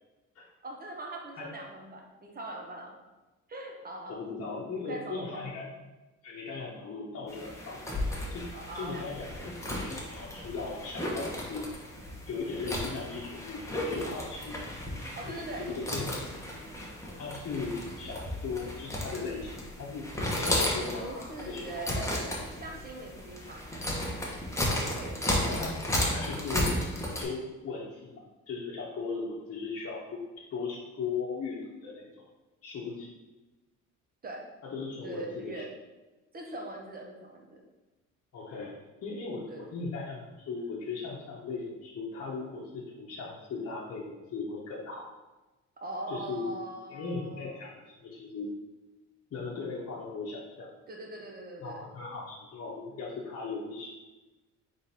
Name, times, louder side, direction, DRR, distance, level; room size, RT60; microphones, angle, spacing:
voice 1, 0.6-2.9 3.5-4.2 4.7-5.6 8.5-9.4 12.0-12.2 15.1-16.2 17.0-17.3 20.9-23.8 24.8-25.4 34.2-34.5 35.0-35.7 36.3-37.6 39.5-39.7 45.8-47.6 50.9-51.9, right 2 dB, 30° right, 1 dB, 1.0 m, -42 dB
voice 2, 4.1-5.9 6.2-7.8 8.3-8.5 8.7-11.7 12.3-14.6 15.2-16.2 16.5-16.7 17.1-20.1 20.4-21.7 25.3-25.8 26.1-26.7 27.2-30.2 30.5-32.2 32.6-33.1 34.6-35.7 38.3-45.1 46.1-46.5 46.9-48.5 49.3-50.7 51.6-53.9, left 4 dB, 55° left, -5 dB, 0.9 m, -38 dB
sound 1, 7.3-27.2, left 1 dB, 10° left, 1.1 m, -34 dB
3.8 x 3.4 x 4.1 m, 1.1 s
cardioid pair, 90°, 30 cm